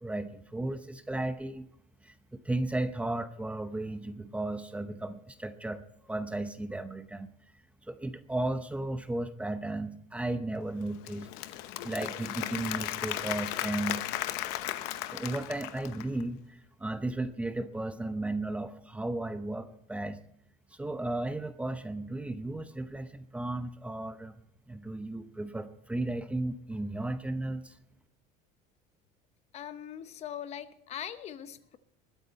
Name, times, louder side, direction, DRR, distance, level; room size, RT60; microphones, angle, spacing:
voice 1, 0.0-1.7 2.0-5.8 6.1-7.3 7.9-11.3 11.8-14.0 15.0-20.2 20.7-24.4 24.7-27.8, right 2 dB, 10° right, 10 dB, 0.8 m, -35 dB
Applause / Crowd, 10.8-16.2, left 14 dB, 80° left, 0.9 m, -36 dB
voice 2, 29.5-31.8, left 10 dB, 40° left, 12 dB, 0.9 m, -41 dB
21.0 x 9.2 x 4.3 m, 0.75 s
cardioid pair, 135°, 16 cm